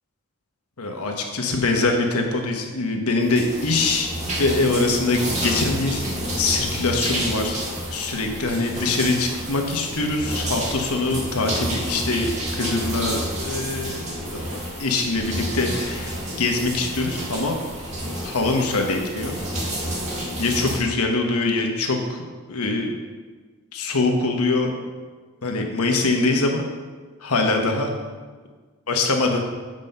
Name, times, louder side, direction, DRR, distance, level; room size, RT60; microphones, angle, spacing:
voice 1, 0.8-4.1 4.4-6.0 6.4-7.6 7.9-17.6 18.2-19.3 20.4-23.0 23.7-24.8 25.4-26.6 27.2-27.9 28.9-29.4, left 3 dB, 85° left, 3 dB, 1.1 m, -23 dB
sound 1, 3.2-20.8, right 1 dB, 30° right, 1.6 m, -30 dB
7.6 x 5.3 x 5.4 m, 1.4 s
head